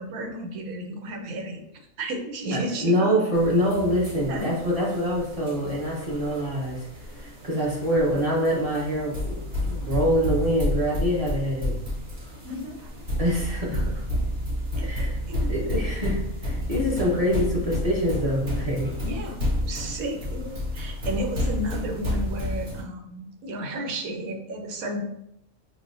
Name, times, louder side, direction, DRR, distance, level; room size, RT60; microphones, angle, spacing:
voice 1, 0.0-1.6 2.0-3.2 4.3-4.6 12.4-12.9 14.8-15.5 19.0-19.4 19.6-25.0, right 1 dB, 90° right, 2 dB, 1.2 m, -33 dB
voice 2, 2.5-6.9 7.2-11.7 13.2-14.0 14.8-15.2 15.5-18.9, equal, 30° right, -5 dB, 1.1 m, -25 dB
sound 1, 3.3-22.8, left 1 dB, 50° right, 1.2 m, -30 dB
6.0 x 2.1 x 2.5 m, 0.79 s
omnidirectional pair, 1.4 m